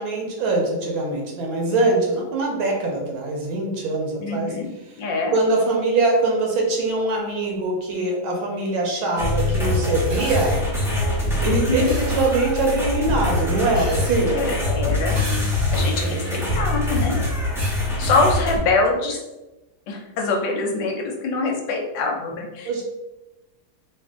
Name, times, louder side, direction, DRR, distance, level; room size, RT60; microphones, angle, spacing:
voice 1, 0.0-4.6 4.9-5.0 5.3-10.6 11.4-14.4 22.6-22.8, right 2 dB, 80° right, 0 dB, 1.6 m, -23 dB
voice 2, 4.2-4.7 5.0-5.3 11.5-11.9 14.3-15.2 15.7-17.2 18.0-19.2 19.9-22.8, left 3 dB, 75° left, 2 dB, 1.3 m, -24 dB
sound 1, 9.2-18.6, left 1 dB, 5° right, 0.4 m, -23 dB
sound 2, 10.1-10.6 11.9-12.2 13.7-14.4 15.1-15.9 16.5-16.6 17.6-17.8 19.2-19.3, right 1 dB, 30° right, 1.0 m, -36 dB
3.6 x 2.4 x 3.5 m, 1.0 s
omnidirectional pair, 2.2 m